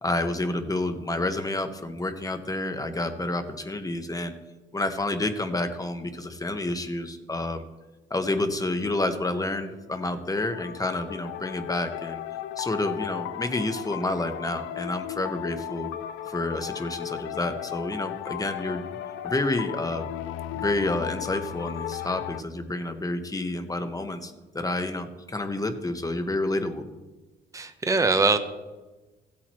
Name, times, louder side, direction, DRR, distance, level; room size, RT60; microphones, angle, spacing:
voice 1, 0.0-4.3 4.7-7.6 8.1-12.2 12.6-15.9 16.3-18.8 19.2-20.1 20.5-26.8, left 2 dB, 15° left, 7 dB, 1.2 m, -29 dB
sound 1, 9.6-22.4, left 12 dB, 85° left, 0.5 m, -36 dB
voice 2, 27.5-28.4, right 3 dB, 15° right, 8 dB, 0.8 m, -22 dB
16.0 x 8.6 x 3.1 m, 1.2 s
cardioid pair, 90°, 20 cm